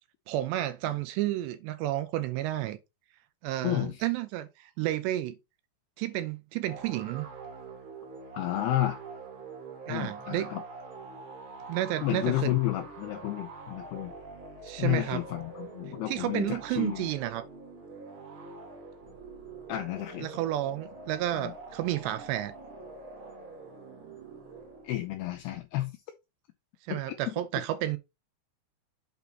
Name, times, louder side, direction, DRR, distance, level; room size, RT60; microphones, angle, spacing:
voice 1, 0.3-2.8 3.4-5.4 6.0-7.3 9.9-10.5 11.7-12.5 14.6-15.2 16.1-17.4 20.2-22.5 26.8-28.0, right 14 dB, 80° right, 2.7 m, -31 dB
voice 2, 3.6-4.0 8.3-9.0 9.9-10.6 12.0-14.1 14.8-17.1 19.7-20.3 21.3-21.5 24.8-25.9 26.9-27.2, left 15 dB, 85° left, 2.3 m, -31 dB
sound 1, 6.7-25.1, right 4 dB, 45° right, 1.6 m, -45 dB
8.2 x 4.1 x 4.0 m
omnidirectional pair, 5.3 m